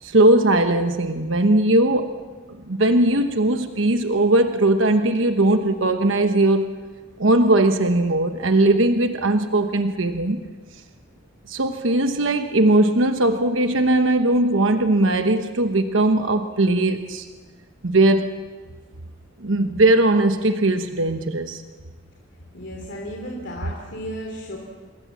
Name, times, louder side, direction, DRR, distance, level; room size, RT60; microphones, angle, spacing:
voice 1, 0.0-2.1 2.7-6.7 7.2-10.4 11.5-17.3 17.8-18.3 19.4-21.6, right 2 dB, 75° right, 7 dB, 1.1 m, -19 dB
voice 2, 22.5-24.6, equal, 65° left, -1 dB, 3.3 m, -34 dB
27.0 x 21.5 x 7.4 m, 1.4 s
head